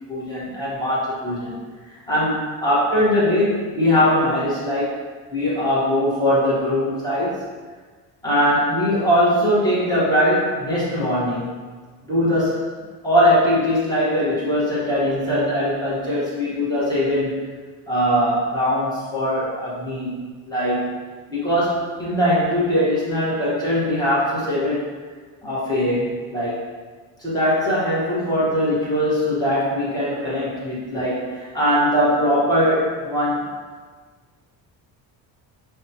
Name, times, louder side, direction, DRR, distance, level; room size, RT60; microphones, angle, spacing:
voice 1, 0.1-1.6 1.9-5.0 5.3-7.4 8.2-11.6 12.0-12.6 13.0-17.4 17.9-21.0 21.3-24.9 25.4-26.6 27.2-33.6, equal, 10° left, -9 dB, 1.2 m, -21 dB
5.5 x 2.3 x 2.8 m, 1.5 s
cardioid pair, 155°, 38 cm